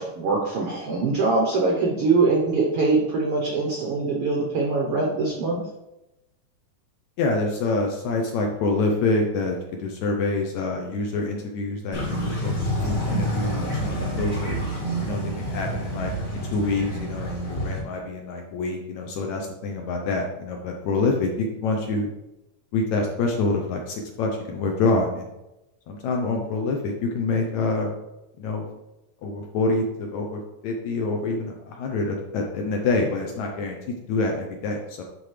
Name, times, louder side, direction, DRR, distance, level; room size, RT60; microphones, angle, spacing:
voice 1, 0.0-5.6, right 3 dB, 80° right, -1 dB, 1.3 m, -23 dB
voice 2, 7.2-14.6 15.0-16.1 16.4-22.1 22.7-25.3 25.9-27.9 28.4-28.6 29.2-33.8 34.1-35.0, left 3 dB, 75° left, 1 dB, 1.8 m, -26 dB
sound 1, 11.9-17.8, equal, 35° left, 1.4 m, -28 dB
10.5 x 3.8 x 3.2 m, 0.94 s
omnidirectional pair, 3.9 m